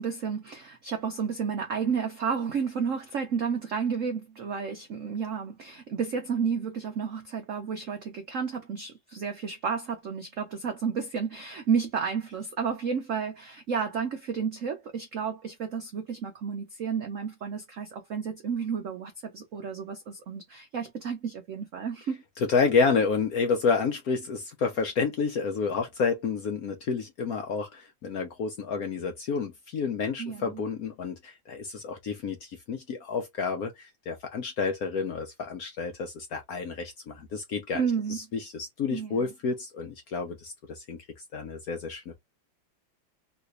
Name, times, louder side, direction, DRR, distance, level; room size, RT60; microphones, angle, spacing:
voice 1, 0.0-22.2 30.2-30.6 37.7-38.2 38.9-39.3, right 6 dB, 75° right, 0.7 m, -31 dB
voice 2, 22.5-37.8 38.1-41.0 41.3-42.1, left 5 dB, 65° left, 0.9 m, -29 dB
3.2 x 3.0 x 2.4 m
omnidirectional pair, 2.2 m